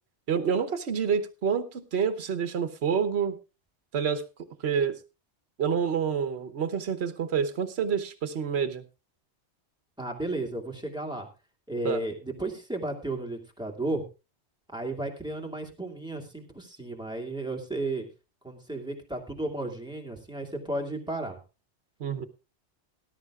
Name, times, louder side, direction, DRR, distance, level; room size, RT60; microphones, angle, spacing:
voice 1, 0.3-3.4 3.9-4.2 4.6-5.0 5.6-8.8 11.8-12.0 22.0-22.3, right 7 dB, 65° right, 9 dB, 1.3 m, -28 dB
voice 2, 10.0-11.3 11.7-14.0 14.7-18.1 18.4-21.4, right 2 dB, 5° right, 1 dB, 2.2 m, -33 dB
19.0 x 11.5 x 2.4 m, 0.29 s
omnidirectional pair, 1.2 m